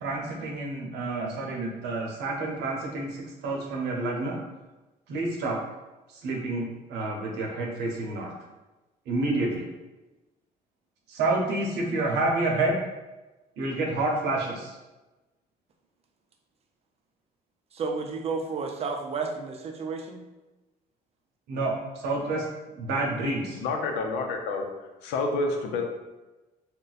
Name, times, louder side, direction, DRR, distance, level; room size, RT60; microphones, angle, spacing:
voice 1, 0.0-3.1 3.4-4.3 5.1-5.5 6.2-6.6 6.9-8.3 9.1-9.5 11.2-12.8 13.6-14.4 21.5-21.7 22.0-22.4 22.8-23.4, right 2 dB, 80° right, 0 dB, 0.7 m, -28 dB
voice 2, 17.7-20.2, right 4 dB, 35° right, 4 dB, 0.5 m, -32 dB
voice 3, 23.6-24.7 25.0-25.8, left 3 dB, 85° left, 3 dB, 0.5 m, -28 dB
2.5 x 2.2 x 4.0 m, 1.1 s
cardioid pair, 110°, 17 cm